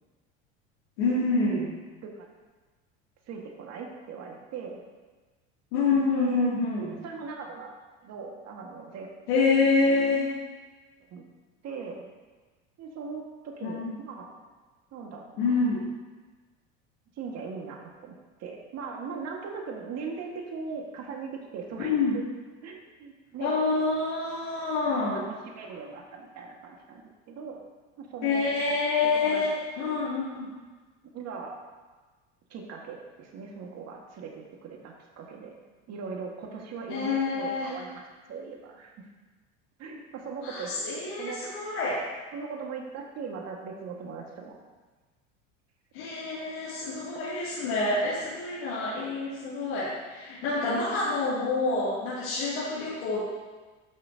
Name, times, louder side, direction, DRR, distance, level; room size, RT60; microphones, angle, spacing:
voice 1, 1.0-1.7 5.7-6.9 9.3-10.3 13.6-14.0 15.4-15.8 21.8-22.2 23.4-25.3 28.2-29.5 29.8-30.5 36.9-37.7 40.4-42.0 45.9-53.2, left 3 dB, 75° left, -10 dB, 2.6 m, -27 dB
voice 2, 3.3-4.8 6.1-6.5 7.0-7.7 8.0-9.1 11.1-11.3 11.6-12.1 12.8-14.3 14.9-15.6 17.2-22.2 22.6-23.6 25.1-27.6 28.0-28.5 29.2-29.4 31.1-31.5 32.5-35.5 35.9-39.1 39.8-40.7 41.2-41.4 42.3-44.6 47.1-47.2, right 5 dB, 50° right, 1 dB, 1.7 m, -39 dB
12.5 x 6.0 x 2.8 m, 1.3 s
hypercardioid pair, 90°, 34 cm